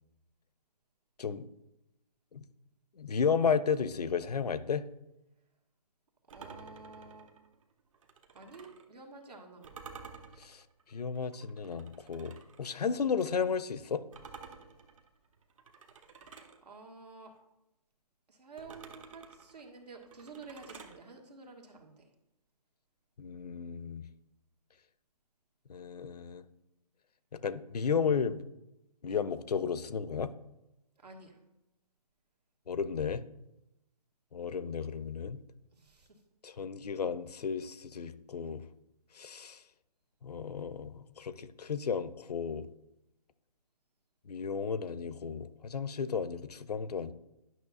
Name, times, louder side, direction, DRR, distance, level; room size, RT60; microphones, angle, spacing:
voice 1, 3.0-4.9 10.4-10.6 10.9-14.0 23.2-24.0 25.7-26.4 27.3-28.4 29.0-30.3 32.7-33.2 34.3-35.4 36.4-38.6 39.1-39.6 40.2-42.7 44.3-47.1, left 6 dB, 75° left, 0.6 m, -33 dB
sound 1, 6.3-8.9 9.6-12.6 14.1-16.6 18.6-21.0, right 5 dB, 55° right, 1.0 m, -51 dB
voice 2, 6.3-7.3 8.3-9.8 16.6-17.3 18.3-22.0 31.0-31.4 35.7-36.1, right 3 dB, 80° right, 1.7 m, -50 dB
11.0 x 6.1 x 2.4 m
figure-of-eight pair, 145°, 20 cm